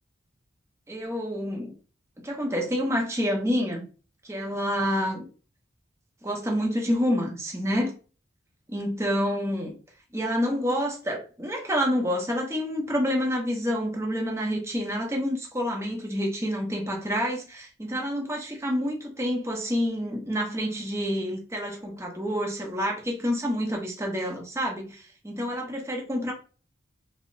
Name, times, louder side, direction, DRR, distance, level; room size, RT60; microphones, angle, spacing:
voice 1, 0.9-1.7 2.2-3.8 4.2-5.3 6.2-7.9 8.7-9.7 10.1-26.3, equal, 15° right, 0.8 m, -28 dB
2.8 x 2.1 x 3.8 m
head